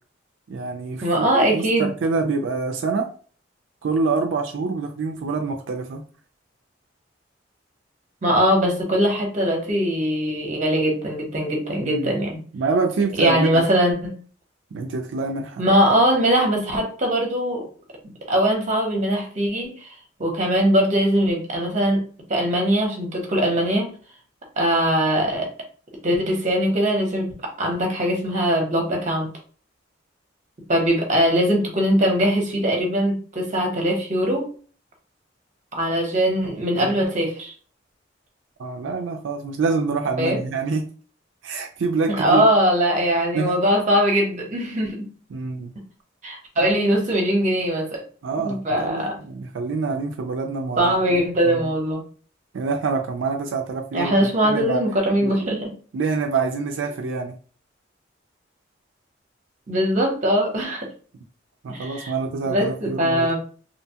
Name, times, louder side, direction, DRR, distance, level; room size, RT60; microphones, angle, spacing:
voice 1, 0.5-3.1 3.8-6.0 11.8-12.1 12.5-13.6 14.7-15.6 36.8-37.0 38.6-40.9 41.4-42.4 43.3-43.6 45.3-45.7 46.6-46.8 48.2-51.6 52.5-54.8 55.2-55.5 55.9-57.3 61.6-63.3, right 4 dB, 85° right, 2 dB, 0.4 m, -26 dB
voice 2, 1.0-1.9 8.2-12.4 13.2-14.1 15.6-17.7 18.0-19.8 20.2-22.0 22.3-23.9 24.6-25.5 26.0-27.3 27.6-29.3 30.7-34.5 35.7-37.5 40.2-40.5 42.1-45.1 46.2-48.0 48.3-49.1 50.8-52.0 53.9-55.7 59.7-60.9 61.7-62.1 62.5-63.4, equal, 40° right, 1 dB, 0.8 m, -21 dB
2.8 x 2.2 x 2.7 m, 0.41 s
head